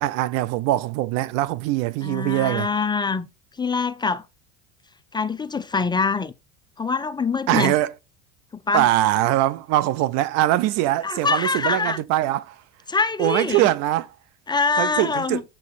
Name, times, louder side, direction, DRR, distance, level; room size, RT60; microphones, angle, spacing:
voice 1, 0.0-2.7 7.5-7.9 8.7-12.6 13.2-14.1 14.8-15.4, right 15 dB, 60° right, 0.6 m, -22 dB
voice 2, 2.0-3.3 3.6-4.2 5.1-6.3 6.8-7.8 8.5-8.9 11.0-12.0 12.9-13.7 14.5-15.4, left 4 dB, 15° left, 0.5 m, -24 dB
7.4 x 5.4 x 4.1 m
hypercardioid pair, 85°, 30 cm